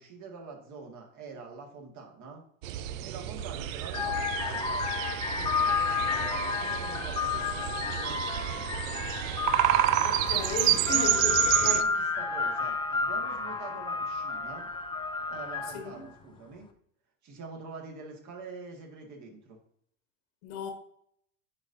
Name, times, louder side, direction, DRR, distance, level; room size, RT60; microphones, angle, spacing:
voice 1, 0.0-2.4 3.0-5.0 5.4-8.6 10.6-14.7 15.3-16.7 17.2-19.6, right 4 dB, 45° right, 1.9 m, -45 dB
sound 1, 2.6-11.8, right 13 dB, 70° right, 0.6 m, -29 dB
sound 2, 3.2-3.4 3.9-16.0, left 5 dB, 10° left, 0.5 m, -31 dB
voice 2, 10.0-11.3 11.6-11.8 13.7-13.8 15.7-16.0 20.4-20.7, left 5 dB, 75° left, 1.6 m, -35 dB
9.5 x 4.2 x 2.7 m
hypercardioid pair, 105°, 42 cm